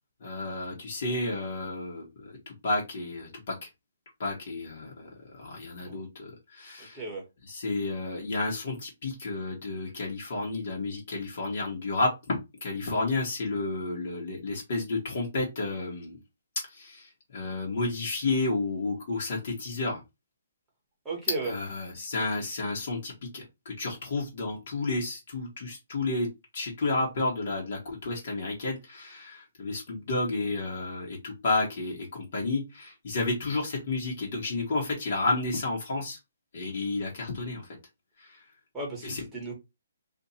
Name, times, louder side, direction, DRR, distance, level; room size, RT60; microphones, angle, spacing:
voice 1, 0.2-3.7 4.2-7.0 7.5-16.2 16.7-20.0 21.4-26.3 26.5-36.2 36.5-37.6 38.2-38.4 39.0-39.2, left 3 dB, 50° left, 1.2 m, -31 dB
voice 2, 6.9-7.2 21.0-21.5 38.7-39.5, right 3 dB, 5° right, 1.3 m, -35 dB
2.7 x 2.5 x 4.1 m
hypercardioid pair, 165°, 0 cm